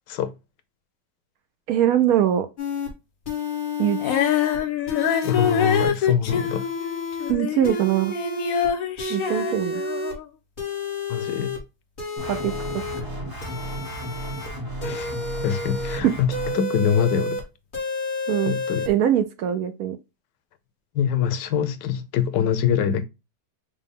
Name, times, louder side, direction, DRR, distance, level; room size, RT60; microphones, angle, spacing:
voice 1, 1.7-2.5 3.8-4.6 7.3-8.1 9.1-9.8 12.3-12.5 16.0-16.1 18.3-18.6 18.9-20.0, right 11 dB, 70° right, 0.9 m, -22 dB
sound 1, 2.6-2.9 3.3-4.6 4.9-5.9 6.3-7.3 7.6-8.7 9.0-10.1 10.6-11.6 12.0-13.0 13.4-14.5 14.8-16.0 16.3-17.4 17.7-18.9, left 3 dB, 35° left, 1.2 m, -30 dB
Female singing, 4.0-7.9 8.1-10.2, left 8 dB, 65° left, 0.9 m, -25 dB
voice 2, 5.2-6.6 11.1-11.6 14.8-15.1 15.4-17.4 18.5-18.9 20.9-23.0, left 8 dB, 90° left, 1.3 m, -24 dB
sound 2, 12.2-16.6, right 1 dB, 15° right, 0.8 m, -33 dB
5.0 x 2.2 x 3.4 m
omnidirectional pair, 1.8 m